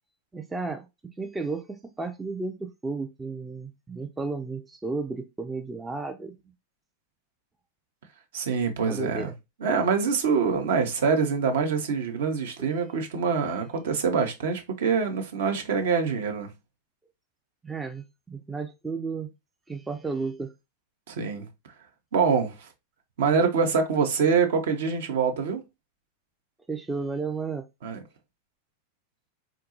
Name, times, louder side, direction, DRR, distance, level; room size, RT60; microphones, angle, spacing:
voice 1, 0.3-0.9 1.2-6.4 8.9-9.3 17.6-19.3 19.7-20.5 26.7-27.6, right 4 dB, 10° right, 0.3 m, -33 dB
voice 2, 8.3-9.3 9.6-16.5 21.1-21.5 22.1-22.7 23.2-25.6 27.8-28.0, right 5 dB, 55° right, 0.6 m, -25 dB
3.7 x 2.2 x 2.8 m
figure-of-eight pair, 90°, 0 cm